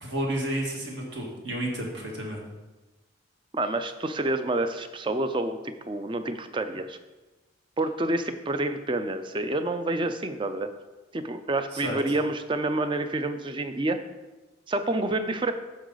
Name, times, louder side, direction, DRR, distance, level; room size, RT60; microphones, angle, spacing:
voice 1, 0.0-2.4 11.7-12.0, right 1 dB, 60° right, -1 dB, 1.8 m, -31 dB
voice 2, 3.5-7.0 7.8-10.7 11.1-14.0 14.7-15.5, right 2 dB, 25° right, 9 dB, 0.4 m, -28 dB
9.6 x 6.4 x 4.0 m, 1.2 s
head